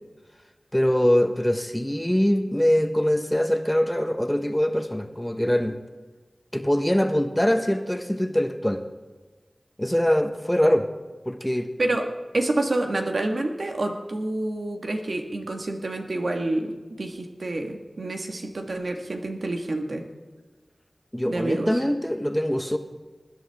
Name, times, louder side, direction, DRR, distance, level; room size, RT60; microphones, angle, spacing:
voice 1, 0.7-5.8 6.5-8.8 9.8-10.9 11.2-11.7 21.1-22.8, equal, 10° left, 7 dB, 1.2 m, -23 dB
voice 2, 12.3-16.7 17.0-20.0 21.2-21.7, right 2 dB, 85° right, 3 dB, 1.7 m, -28 dB
20.0 x 11.0 x 3.6 m, 1.3 s
wide cardioid pair, 55°, 0 cm